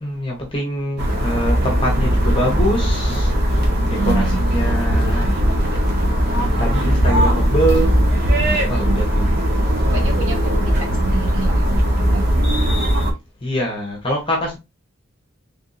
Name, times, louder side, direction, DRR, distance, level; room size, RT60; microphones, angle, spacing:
voice 1, 0.0-5.4 6.4-8.0 8.7-9.4 13.4-14.6, equal, 25° left, 1.0 m, -24 dB
sound 1, 1.0-13.1, equal, 50° right, 1.1 m, -18 dB
voice 2, 3.8-4.7 8.3-9.1 9.9-11.7 12.0-12.3, right 3 dB, 70° right, 1.3 m, -29 dB
3.5 x 3.5 x 2.6 m
head